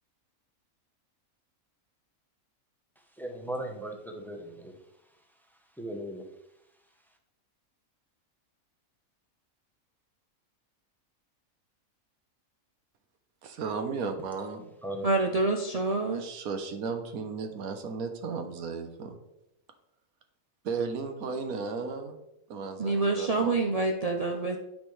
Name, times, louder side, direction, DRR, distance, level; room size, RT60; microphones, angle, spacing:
voice 1, 3.2-4.7 5.8-6.2 14.8-15.1, right 1 dB, ahead, 2 dB, 0.6 m, -37 dB
voice 2, 13.4-14.7 16.1-19.2 20.6-22.2 22.5-23.5, right 5 dB, 85° right, 6 dB, 1.3 m, -35 dB
voice 3, 15.0-16.2 22.8-24.6, right 3 dB, 70° right, 3 dB, 0.3 m, -27 dB
8.9 x 5.2 x 3.2 m, 0.86 s
omnidirectional pair, 1.5 m